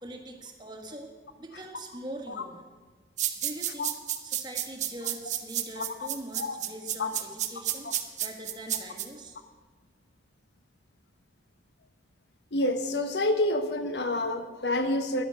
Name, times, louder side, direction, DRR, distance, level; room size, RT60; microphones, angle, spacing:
voice 1, 0.0-1.1 1.4-2.7 3.4-9.4, right 1 dB, 25° right, 3 dB, 1.5 m, -42 dB
sound 1, 3.2-9.1, right 11 dB, 45° right, 0.8 m, -31 dB
voice 2, 5.8-6.1 6.3-6.6 7.0-7.1 7.8-7.9 12.5-15.2, left 1 dB, 80° left, 8 dB, 1.0 m, -28 dB
11.0 x 10.5 x 6.8 m, 1.3 s
head